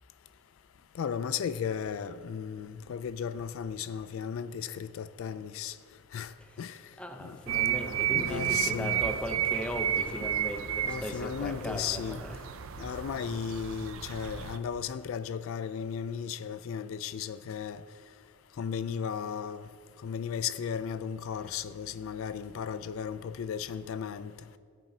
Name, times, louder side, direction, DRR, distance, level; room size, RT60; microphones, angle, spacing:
voice 1, 1.0-5.7 6.1-6.3 6.6-6.8 7.2-7.4 8.1-9.0 10.7-12.2 12.8-17.8 18.6-19.6 20.0-24.3, left 7 dB, 70° left, 0.3 m, -35 dB
voice 2, 7.0-12.5, equal, 5° left, 0.6 m, -38 dB
sound 1, 7.5-14.6, right 10 dB, 75° right, 0.5 m, -32 dB
16.0 x 9.1 x 2.7 m
head